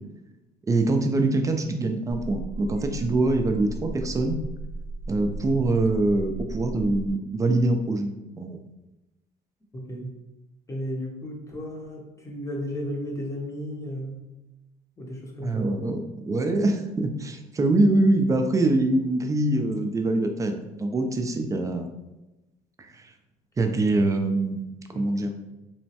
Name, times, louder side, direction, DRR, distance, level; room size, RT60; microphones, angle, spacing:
voice 1, 0.7-4.4 5.1-8.1 8.4-8.6 15.4-21.9 23.0-23.1 23.6-25.3, right 2 dB, 20° right, 5 dB, 0.3 m, -24 dB
sound 1, 2.1-7.1, right 2 dB, 80° left, 0.4 m, -36 dB
voice 2, 9.7-10.1 10.7-14.2 15.0-15.7 24.9-25.1, equal, 20° left, -1 dB, 0.6 m, -34 dB
3.0 x 2.1 x 2.8 m, 1.0 s
cardioid pair, 110°, 17 cm